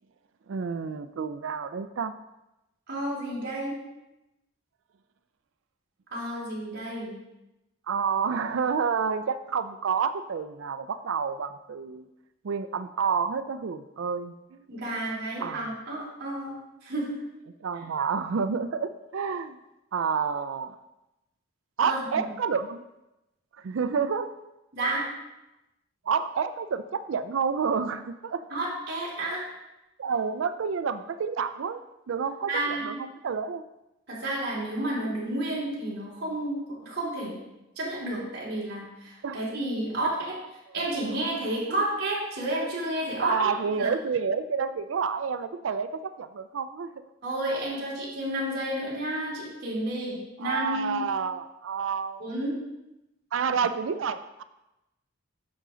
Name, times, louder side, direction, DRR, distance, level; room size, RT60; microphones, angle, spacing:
voice 1, 0.5-2.1 7.9-12.1 12.4-14.6 15.4-15.6 17.6-19.6 19.9-20.8 21.8-22.8 23.6-24.3 26.0-28.4 30.0-31.8 32.1-33.6 39.2-39.4 43.2-46.9 47.5-47.6 50.4-52.2 53.3-54.4, right 6 dB, 65° right, 11 dB, 0.4 m, -29 dB
voice 2, 2.9-3.8 6.1-7.2 14.7-16.5 16.8-17.1 21.8-22.3 24.7-25.0 28.5-29.5 32.5-32.9 34.1-37.4 37.8-40.1 40.7-43.5 43.8-43.9 47.2-51.0 52.2-52.6, right 1 dB, 50° right, -6 dB, 3.5 m, -31 dB
9.6 x 6.7 x 3.8 m, 0.94 s
head